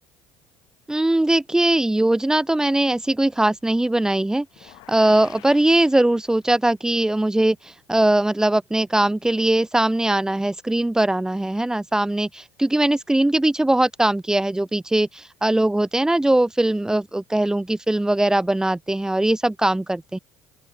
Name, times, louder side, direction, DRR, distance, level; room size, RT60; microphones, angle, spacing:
voice 1, 0.9-20.2, right 1 dB, 10° right, 0.7 m, -20 dB
sound 1, 4.5-6.7, left 24 dB, 75° left, 6.1 m, -49 dB
open air
supercardioid pair, 80°, 8 cm